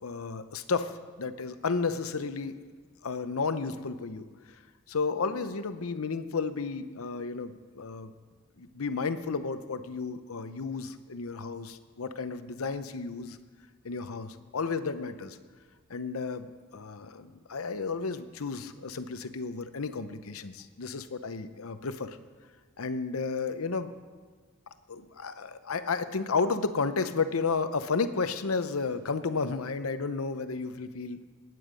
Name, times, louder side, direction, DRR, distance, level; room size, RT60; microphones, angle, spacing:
voice 1, 0.0-2.5 3.0-4.6 4.9-8.1 8.6-13.4 13.8-15.4 15.9-22.2 22.8-23.9 24.9-31.2, left 4 dB, 75° left, 11 dB, 0.8 m, -32 dB
19.0 x 9.4 x 5.2 m, 1.5 s
head